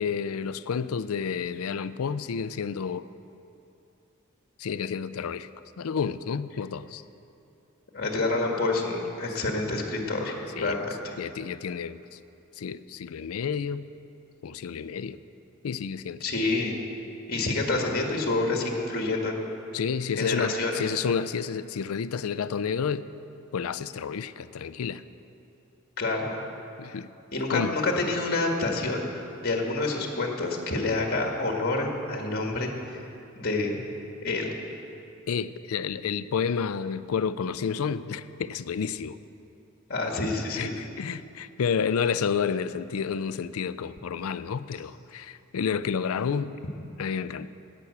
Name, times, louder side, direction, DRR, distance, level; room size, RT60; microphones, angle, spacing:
voice 1, 0.0-3.1 4.6-5.5 5.8-7.0 10.6-10.8 11.2-12.2 12.6-13.9 14.4-15.2 15.6-16.2 17.3-17.6 19.7-23.1 23.5-25.0 26.8-27.1 27.5-27.8 35.3-39.2 40.5-46.6 47.0-47.5, left 6 dB, 85° left, 15 dB, 0.4 m, -30 dB
voice 2, 7.9-11.1 16.2-16.7 17.3-19.4 20.2-20.8 26.0-26.4 27.3-29.0 29.4-33.0 33.4-33.8 34.2-34.5 39.9-40.7, left 2 dB, 50° left, 1 dB, 1.6 m, -28 dB
17.0 x 6.0 x 8.0 m, 2.8 s
head